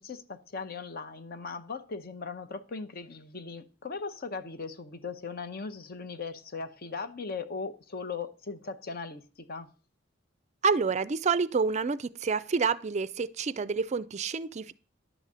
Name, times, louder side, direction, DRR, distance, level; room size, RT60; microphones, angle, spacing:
voice 1, 0.0-9.7, left 4 dB, 50° left, 0.8 m, -38 dB
voice 2, 10.6-14.7, right 5 dB, 35° right, 0.4 m, -28 dB
11.0 x 4.0 x 7.3 m
head